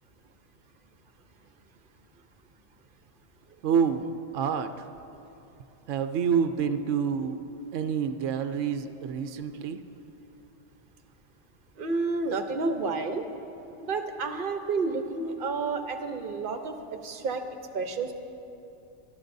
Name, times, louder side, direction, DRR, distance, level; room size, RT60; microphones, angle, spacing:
voice 1, 3.6-4.7 5.9-7.4 7.7-9.8, right 7 dB, 75° right, 8 dB, 0.9 m, -27 dB
voice 2, 11.8-13.2 13.8-16.7 17.0-17.4 17.7-18.1, right 4 dB, 45° right, 6 dB, 0.9 m, -30 dB
27.0 x 12.0 x 2.6 m, 2.9 s
omnidirectional pair, 1.3 m